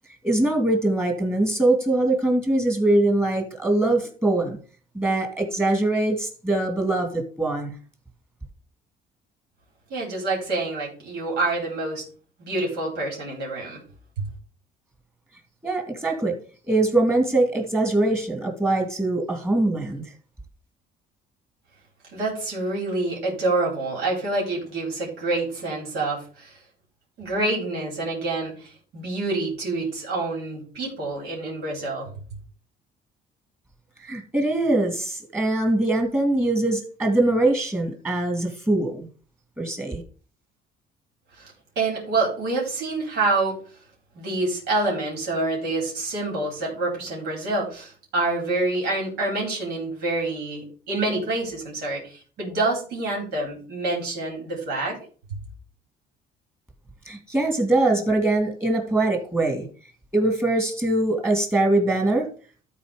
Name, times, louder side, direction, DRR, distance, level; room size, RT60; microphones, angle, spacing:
voice 1, 0.2-4.6 4.9-7.7 15.6-16.4 16.7-20.0 34.0-39.1 39.6-40.0 57.1-59.7 60.1-62.3, right 2 dB, 15° right, 2 dB, 2.4 m, -22 dB
voice 2, 9.9-12.0 12.4-13.8 22.1-26.6 27.2-32.1 41.4-43.6 44.1-55.0, right 2 dB, 75° right, -1 dB, 4.3 m, -27 dB
12.5 x 4.3 x 5.0 m, 0.40 s
cardioid pair, 110°, 17 cm